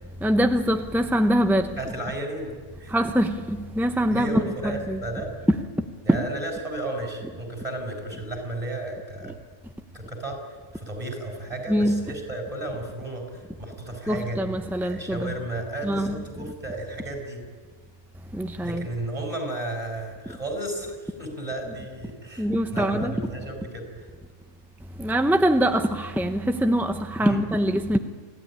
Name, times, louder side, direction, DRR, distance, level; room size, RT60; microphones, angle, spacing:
voice 1, 0.2-1.8 2.9-5.0 11.7-12.0 14.1-15.3 15.8-16.1 18.3-18.9 22.4-23.1 25.0-28.0, equal, ahead, 0.5 m, -23 dB
voice 2, 1.8-3.0 4.1-5.3 6.0-9.3 9.9-10.4 10.7-14.4 14.8-17.4 18.6-24.1 27.2-27.4, right 1 dB, 25° right, 5.4 m, -33 dB
26.5 x 16.0 x 9.9 m
omnidirectional pair, 1.5 m